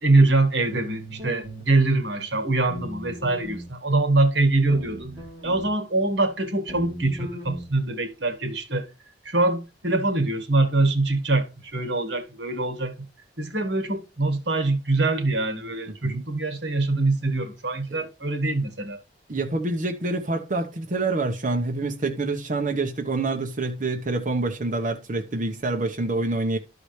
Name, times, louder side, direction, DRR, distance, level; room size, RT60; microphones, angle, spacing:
voice 1, 0.0-5.1 5.4-8.9 9.2-13.1 13.4-19.0, right 2 dB, 75° right, 1.8 m, -23 dB
sound 1, 0.7-1.7 2.7-3.7 4.7-5.7 6.7-7.7, right 1 dB, 30° right, 2.8 m, -37 dB
voice 2, 15.9-16.2 17.9-18.0 19.3-26.6, right 2 dB, 45° right, 1.0 m, -27 dB
13.0 x 4.9 x 3.2 m
head